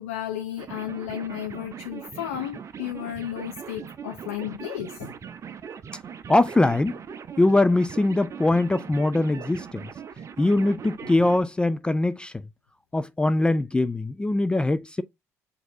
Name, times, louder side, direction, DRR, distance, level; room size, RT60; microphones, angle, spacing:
voice 1, 0.0-5.1 11.0-11.1, left 11 dB, 80° left, 0.5 m, -33 dB
sound 1, 0.6-11.4, right 7 dB, 40° right, 0.6 m, -40 dB
voice 2, 6.3-6.9 7.4-9.8 10.4-12.3 12.9-15.0, left 2 dB, 10° left, 0.3 m, -22 dB
7.7 x 2.7 x 2.5 m
figure-of-eight pair, 50°, 8 cm